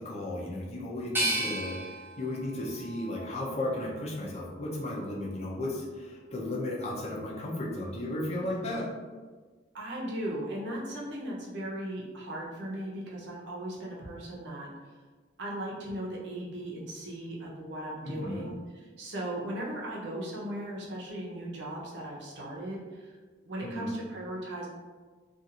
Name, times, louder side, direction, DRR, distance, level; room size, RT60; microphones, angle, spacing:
voice 1, 0.0-1.8 2.2-8.9 18.0-18.5 23.6-24.0, left 1 dB, 35° left, -4 dB, 0.6 m, -34 dB
sound 1, 1.1-4.1 4.6-5.4, right 1 dB, 10° right, 0.6 m, -35 dB
voice 2, 8.4-8.8 9.7-14.7 15.4-18.6 19.0-23.1 23.4-24.7, right 1 dB, 65° right, -4 dB, 0.7 m, -37 dB
2.5 x 2.5 x 2.8 m, 1.4 s
head